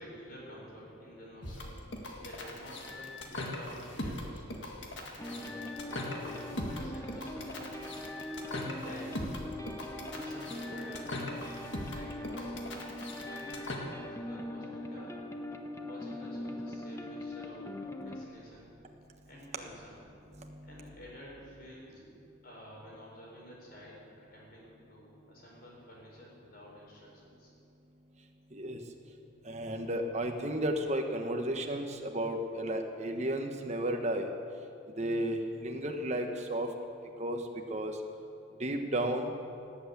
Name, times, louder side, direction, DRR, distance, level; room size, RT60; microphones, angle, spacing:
voice 1, 0.0-1.8 2.2-4.7 5.2-5.7 6.0-7.8 8.4-9.4 9.9-12.7 13.2-15.1 15.8-17.7 18.0-18.7 19.2-20.0 20.6-22.0 22.4-27.5, equal, 50° left, -3 dB, 4.8 m, -50 dB
sound 1, 1.4-13.8, left 1 dB, 65° left, 1.9 m, -40 dB
sound 2, 5.2-18.3, left 1 dB, 15° left, 0.8 m, -41 dB
voice 2, 20.4-20.9 28.5-28.8 29.4-34.3 35.0-36.7 37.2-37.4 37.7-38.0 38.6-39.3, right 1 dB, 35° right, 3 dB, 1.2 m, -33 dB
18.0 x 8.2 x 8.2 m, 2.6 s
head